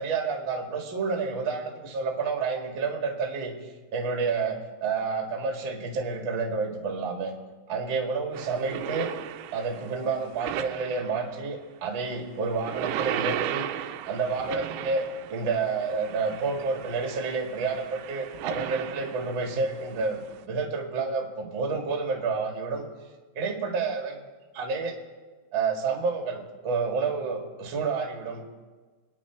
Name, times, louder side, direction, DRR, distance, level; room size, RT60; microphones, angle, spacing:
voice 1, 0.0-3.5 3.9-7.3 7.7-9.1 9.5-13.7 14.1-22.9 23.3-24.2 24.5-24.9 25.5-28.4, right 4 dB, 45° right, 1 dB, 1.7 m, -29 dB
sound 1, 8.3-11.5 12.4-20.4, right 12 dB, 80° right, 2.8 m, -36 dB
27.5 x 10.0 x 4.6 m, 1.3 s
omnidirectional pair, 5.6 m